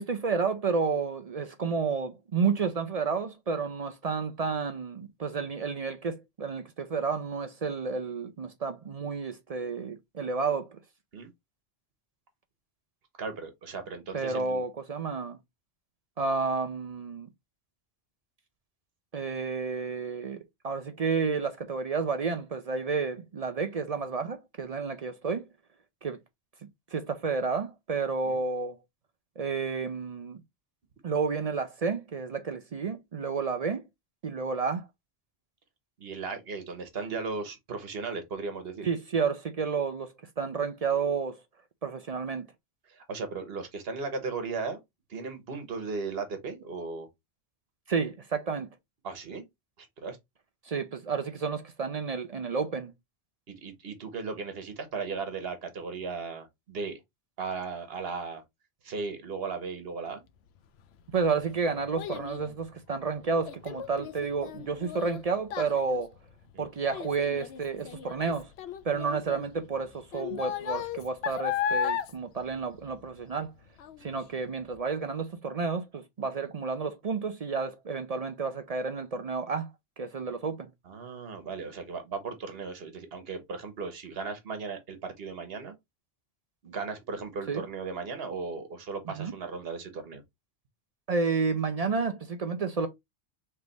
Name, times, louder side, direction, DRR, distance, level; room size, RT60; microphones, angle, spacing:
voice 1, 0.0-10.8 14.1-15.4 16.2-17.3 19.1-25.5 26.0-26.2 26.9-28.8 29.4-30.4 31.0-33.8 34.2-34.9 38.8-41.4 41.8-42.5 47.9-48.7 50.6-52.9 61.1-66.1 66.6-68.5 68.8-73.5 74.0-79.7 80.0-80.7 87.5-87.6 89.2-89.3 91.1-92.9, right 5 dB, 50° right, 0.5 m, -31 dB
voice 2, 13.2-14.6 28.2-28.4 36.0-38.9 42.9-44.8 45.1-47.1 49.0-49.4 49.8-50.2 53.5-57.0 57.4-58.4 58.8-60.2 66.5-66.6 76.2-76.3 80.9-85.7 86.6-90.2, right 4 dB, 75° right, 1.3 m, -36 dB
Child speech kid speaking, 60.8-73.4 73.8-74.2 74.7-74.8, left 8 dB, 85° left, 0.8 m, -36 dB
3.3 x 3.3 x 3.9 m
omnidirectional pair, 1.0 m